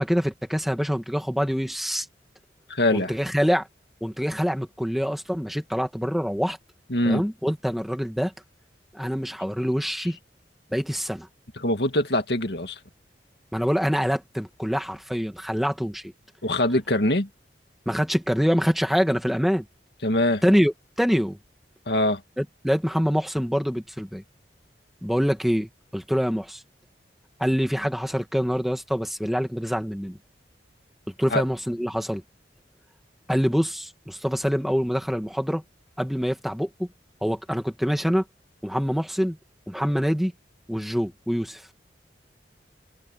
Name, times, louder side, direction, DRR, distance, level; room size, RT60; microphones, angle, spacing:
voice 1, 0.0-2.1 2.9-3.7 4.0-6.6 7.0-8.3 8.9-10.2 10.7-11.3 13.5-16.1 17.9-19.7 20.4-21.4 22.4-24.2 25.0-26.6 27.4-30.2 31.2-32.2 33.3-35.6 36.0-36.9 37.2-38.2 38.6-39.4 39.7-40.3 40.7-41.6, equal, ahead, 2.3 m, -25 dB
voice 2, 2.7-3.1 6.9-7.2 11.6-12.8 16.4-17.3 20.0-20.4 21.9-22.2 31.3-31.4, left 1 dB, 65° left, 2.3 m, -23 dB
open air
head